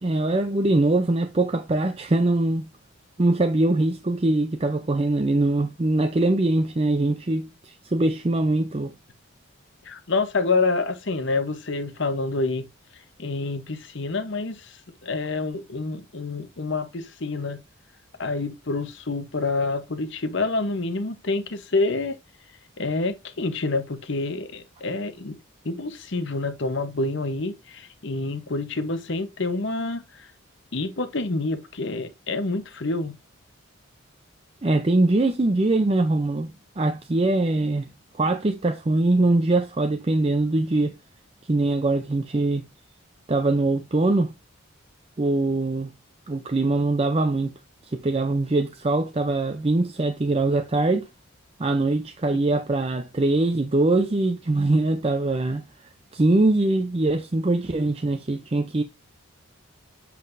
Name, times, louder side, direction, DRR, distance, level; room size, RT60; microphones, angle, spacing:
voice 1, 0.0-2.7 3.2-8.9 34.6-37.9 38.1-40.9 41.5-42.6 43.3-44.3 45.2-45.9 46.3-47.5 47.9-51.1 51.6-55.6 56.1-58.8, right 2 dB, 25° right, 0.5 m, -22 dB
voice 2, 9.8-12.7 13.2-17.6 18.2-22.2 22.8-25.4 25.6-30.3 30.7-33.2, left 3 dB, 55° left, 0.9 m, -27 dB
7.3 x 5.9 x 2.6 m
head